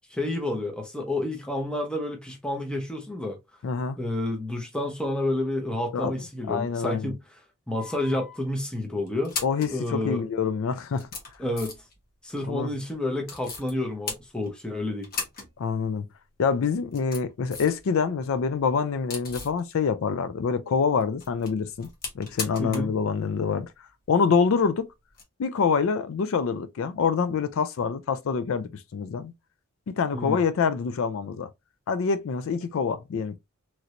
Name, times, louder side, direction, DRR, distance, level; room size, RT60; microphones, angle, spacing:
voice 1, 0.1-3.4 4.0-7.2 7.7-9.3 9.7-10.2 11.4-11.8 12.2-15.1 22.6-22.9 30.1-30.4, left 1 dB, 5° left, 0.7 m, -29 dB
voice 2, 3.6-4.0 5.9-6.1 6.5-7.1 9.4-11.1 12.5-12.7 15.6-16.0 16.4-21.9 22.1-23.7 24.1-24.9 25.4-29.3 29.9-31.5 31.9-33.4, left 5 dB, 60° left, 0.4 m, -26 dB
sound 1, 7.8-8.4 9.1-9.7 10.5-10.6 10.9-12.0 13.2-13.7 14.0-14.7 15.0-15.5 15.8-15.9 16.7-17.8 18.2-19.6 21.0-23.0 23.2-23.3 25.1-25.2, left 4 dB, 40° left, 1.0 m, -37 dB
3.1 x 2.5 x 2.8 m
head